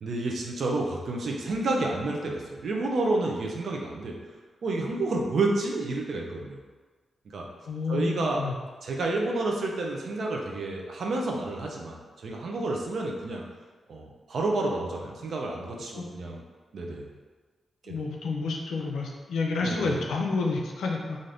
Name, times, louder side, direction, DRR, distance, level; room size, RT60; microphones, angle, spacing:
voice 1, 0.0-4.1 4.6-6.6 7.3-7.5 7.9-8.4 8.8-13.4 13.9-16.4 16.7-17.1 17.8-17.9 19.6-20.0, right 2 dB, 70° right, 0 dB, 0.5 m, -30 dB
voice 2, 7.7-8.5 15.9-16.1 17.9-21.2, left 3 dB, 90° left, 0 dB, 0.4 m, -29 dB
2.6 x 2.6 x 3.3 m, 1.4 s
cardioid pair, 60°, 0 cm